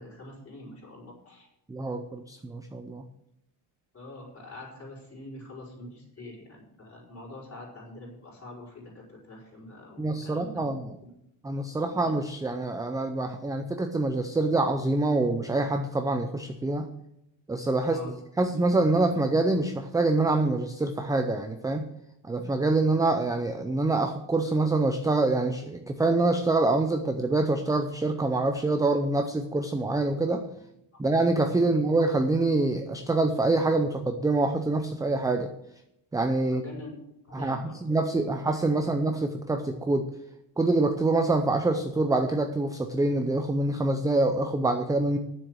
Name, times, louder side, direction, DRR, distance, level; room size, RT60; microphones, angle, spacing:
voice 1, 0.0-1.5 3.9-10.7 11.0-11.1 11.9-12.1 17.8-18.1 36.4-37.0 37.2-37.8, left 1 dB, 30° left, -4 dB, 4.5 m, -44 dB
voice 2, 1.7-3.0 10.0-11.0 11.4-16.9 17.5-18.0 18.4-21.9 22.2-30.4 31.0-35.5 36.1-36.6 37.3-40.1 40.6-45.2, right 2 dB, 10° right, 6 dB, 0.5 m, -25 dB
10.0 x 7.4 x 7.8 m, 0.80 s
cardioid pair, 160°, 47 cm